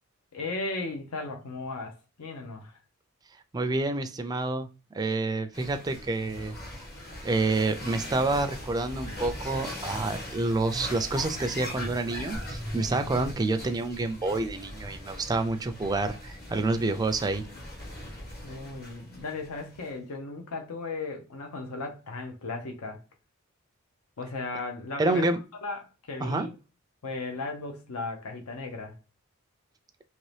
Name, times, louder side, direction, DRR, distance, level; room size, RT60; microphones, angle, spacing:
voice 1, 0.3-2.8 18.4-23.0 24.2-25.3 25.6-26.5 27.0-29.0, left 3 dB, 80° left, 0.7 m, -36 dB
voice 2, 3.5-4.7 4.9-6.6 7.2-17.4 25.0-25.4 26.2-26.5, right 2 dB, 20° right, 0.3 m, -28 dB
sound 1, 5.5-19.9, left 1 dB, 45° left, 1.2 m, -40 dB
2.9 x 2.7 x 3.2 m
head